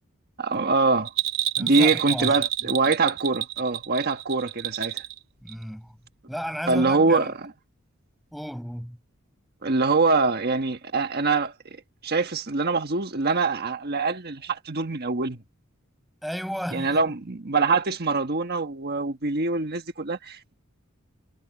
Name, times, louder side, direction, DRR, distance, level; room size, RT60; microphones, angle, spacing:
voice 1, 0.4-1.1 1.6-5.0 6.7-7.5 9.6-15.4 16.7-20.5, right 3 dB, 50° right, 1.4 m, -24 dB
Bell, 1.1-5.2 5.5-5.6, right 11 dB, 70° right, 4.3 m, -28 dB
voice 2, 1.6-2.4 5.4-6.0 6.3-7.3 8.3-9.0 16.2-17.0, equal, ahead, 7.1 m, -33 dB
head